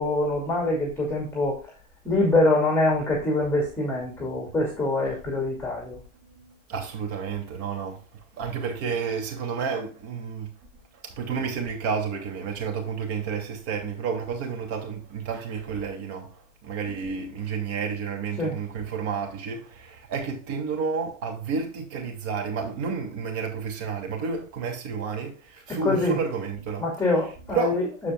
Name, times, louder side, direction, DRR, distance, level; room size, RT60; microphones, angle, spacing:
voice 1, 0.0-1.6 2.0-6.0 18.4-18.6 25.7-26.2 26.8-28.1, left 2 dB, 5° left, 2.7 m, -24 dB
voice 2, 6.4-8.0 8.4-10.5 11.0-16.3 16.6-26.9 27.5-27.8, right 6 dB, 50° right, 2.8 m, -31 dB
13.5 x 5.0 x 2.4 m
hypercardioid pair, 100°, 39 cm